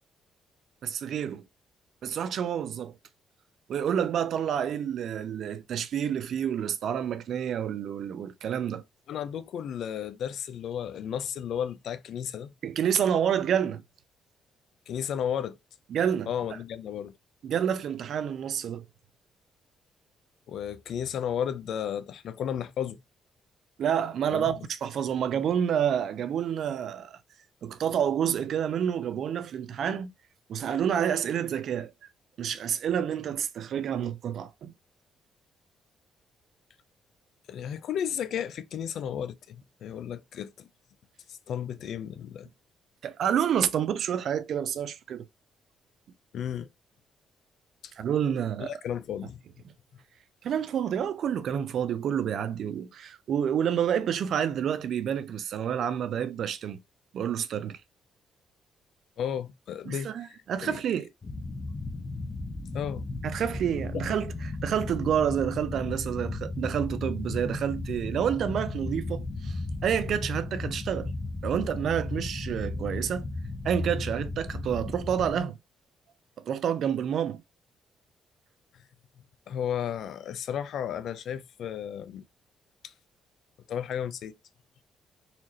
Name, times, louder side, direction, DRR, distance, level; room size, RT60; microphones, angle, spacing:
voice 1, 0.8-1.4 2.0-3.0 3.7-8.8 12.6-13.8 15.9-16.3 17.4-18.8 23.8-27.2 27.6-30.1 30.5-31.9 32.4-34.7 43.0-45.2 48.0-48.7 50.4-56.8 57.1-57.8 59.9-61.1 63.2-71.1 71.4-73.3 73.6-75.5 76.4-77.4, right 9 dB, 65° right, 0.5 m, -29 dB
voice 2, 9.1-12.5 14.9-15.6 16.3-17.2 20.5-23.0 24.3-24.6 37.5-40.7 41.3-42.5 46.3-46.7 47.8-47.9 48.6-49.4 59.2-60.4 60.6-60.8 62.7-63.1 63.9-64.0 79.5-82.2 82.8-82.9 83.7-84.3, left 9 dB, 70° left, 0.5 m, -33 dB
sound 1, 61.2-75.4, left 2 dB, 35° left, 0.8 m, -35 dB
4.2 x 2.6 x 3.0 m
cardioid pair, 90°, 0 cm